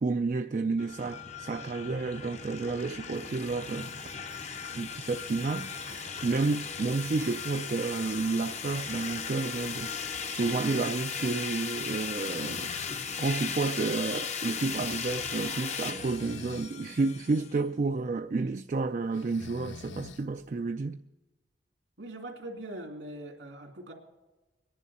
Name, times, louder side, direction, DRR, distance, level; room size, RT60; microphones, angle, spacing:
voice 1, 0.0-3.9 4.7-12.7 13.2-21.0, right 3 dB, 40° right, 0.3 m, -31 dB
sound 1, 0.8-17.6, left 6 dB, 40° left, 0.7 m, -37 dB
Breathing, 12.1-13.0 15.7-16.7 19.1-20.5, left 5 dB, 85° left, 0.5 m, -46 dB
voice 2, 22.0-23.9, right 1 dB, 85° right, 2.6 m, -41 dB
23.0 x 11.0 x 4.2 m
head